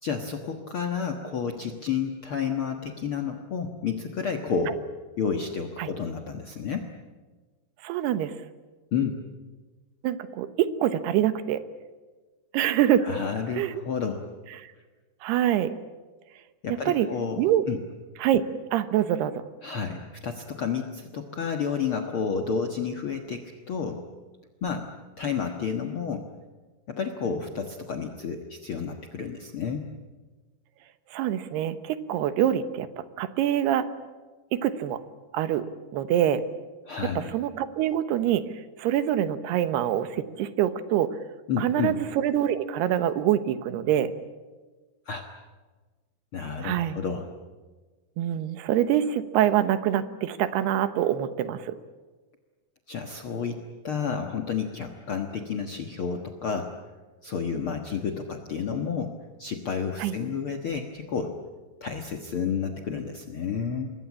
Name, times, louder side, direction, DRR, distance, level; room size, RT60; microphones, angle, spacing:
voice 1, 0.0-4.8 5.2-6.9 8.9-9.2 13.0-14.3 16.6-17.8 19.6-24.0 24.6-24.9 25.2-26.3 26.9-29.9 36.9-37.3 41.5-41.9 45.0-45.3 46.3-47.3 52.9-56.7 57.2-61.4 61.8-63.9, left 6 dB, 75° left, 4 dB, 1.2 m, -31 dB
voice 2, 7.8-8.3 10.0-11.6 12.5-13.1 13.6-13.8 15.2-15.7 16.7-17.1 17.4-17.7 18.2-18.4 18.7-19.4 31.1-33.9 34.5-35.0 35.3-35.7 35.9-36.4 37.3-38.5 38.8-41.1 41.6-44.1 46.6-47.0 48.2-51.7 60.0-60.1, right 11 dB, 75° right, 12 dB, 3.1 m, -25 dB
26.5 x 21.5 x 8.5 m, 1.3 s
omnidirectional pair, 4.8 m